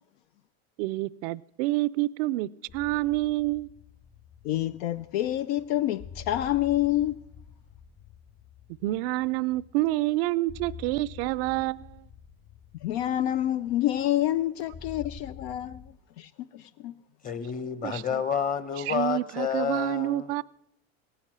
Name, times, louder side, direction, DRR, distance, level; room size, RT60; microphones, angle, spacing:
voice 1, 0.8-3.7 8.8-12.0 17.8-18.0 18.9-20.4, right 18 dB, 70° right, 0.5 m, -28 dB
sound 1, 2.7-15.9, left 6 dB, 55° left, 3.5 m, -48 dB
voice 2, 4.4-7.1 12.8-15.8 16.2-16.3 16.8-16.9, left 13 dB, 75° left, 0.6 m, -27 dB
voice 3, 17.2-20.4, left 7 dB, 25° left, 1.1 m, -30 dB
17.0 x 9.9 x 7.4 m
supercardioid pair, 110°, 32 cm